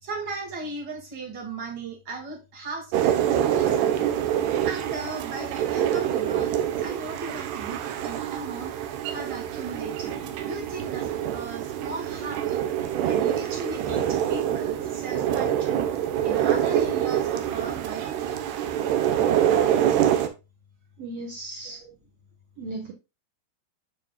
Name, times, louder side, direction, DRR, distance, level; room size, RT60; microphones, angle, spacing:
voice 1, 0.0-4.1 4.7-8.7 9.1-12.6 13.1-18.4 21.6-21.9, right 3 dB, 35° right, 2 dB, 1.9 m, -37 dB
sound 1, 2.9-20.3, right 10 dB, 80° right, 3.1 m, -26 dB
voice 2, 21.0-21.8 22.6-22.9, right 2 dB, 65° right, 0 dB, 1.5 m, -36 dB
8.9 x 7.3 x 2.3 m, 0.26 s
omnidirectional pair, 4.8 m